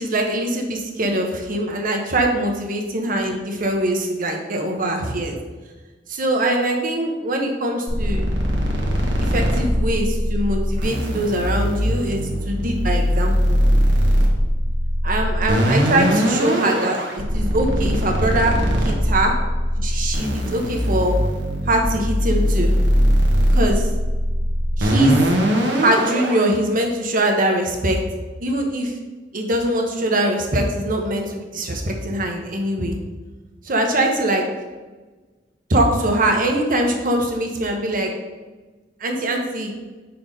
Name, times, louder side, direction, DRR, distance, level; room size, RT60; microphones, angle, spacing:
voice 1, 0.0-5.3 6.1-8.3 9.2-12.2 12.4-13.6 15.0-18.5 18.8-19.3 19.8-21.2 21.6-22.7 23.5-23.9 24.8-25.3 25.8-28.0 28.4-29.0 29.3-32.9 33.6-34.5 35.7-38.1 39.0-39.7, right 1 dB, 50° right, 3 dB, 1.0 m, -22 dB
sound 1, 7.9-26.5, equal, 70° right, 1.4 m, -20 dB
5.7 x 4.4 x 5.2 m, 1.3 s
head